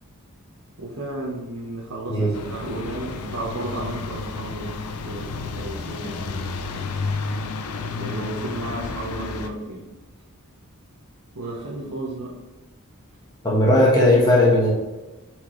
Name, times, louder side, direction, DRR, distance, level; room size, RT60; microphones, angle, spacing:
voice 1, 0.8-7.0 7.8-9.8 11.3-12.4, right 2 dB, 80° right, -4 dB, 1.1 m, -33 dB
sound 1, 2.3-9.5, left 4 dB, 80° left, 0.6 m, -31 dB
voice 2, 13.4-14.7, left 1 dB, 20° left, -4 dB, 1.3 m, -17 dB
8.2 x 4.5 x 3.2 m, 1.1 s
head